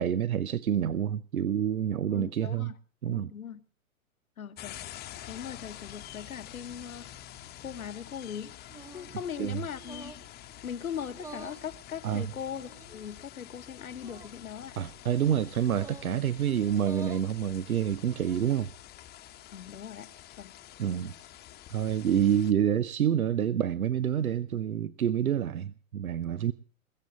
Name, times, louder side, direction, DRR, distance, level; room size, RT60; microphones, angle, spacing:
voice 1, 0.0-2.7 3.0-3.3 9.4-9.6 12.0-12.3 14.8-18.7 20.8-21.1 21.7-26.5, right 9 dB, 80° right, 0.8 m, -28 dB
voice 2, 2.1-2.7 3.0-3.6 4.4-4.8 5.3-7.1 7.6-8.5 8.9-10.1 10.4-14.8 19.5-20.1 20.4-20.5, left 8 dB, 75° left, 1.4 m, -40 dB
sound 1, 4.6-22.5, left 12 dB, 20° left, 1.1 m, -48 dB
sound 2, 8.7-9.2 9.8-10.3 11.1-11.7 12.6-13.1 14.0-14.3 15.7-16.1 16.7-17.3 18.0-18.5, right 3 dB, 10° right, 0.8 m, -47 dB
21.5 x 7.6 x 7.8 m
figure-of-eight pair, 110°, 42 cm